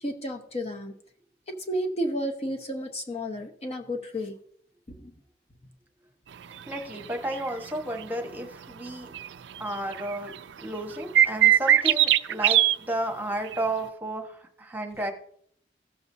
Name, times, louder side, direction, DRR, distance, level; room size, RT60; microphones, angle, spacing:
voice 1, 0.0-0.9 1.7-4.3 5.0-5.1, equal, 35° left, 3 dB, 0.9 m, -31 dB
voice 2, 6.7-9.1 9.6-10.3 10.6-15.1, right 1 dB, 10° right, 3 dB, 1.1 m, -32 dB
sound 1, 7.3-7.5 8.0-8.1 9.1-9.3 9.6-9.7 9.9-10.3 11.1-12.7 13.5-13.6, right 12 dB, 80° right, 0.4 m, -19 dB
16.5 x 7.0 x 2.7 m, 0.64 s
head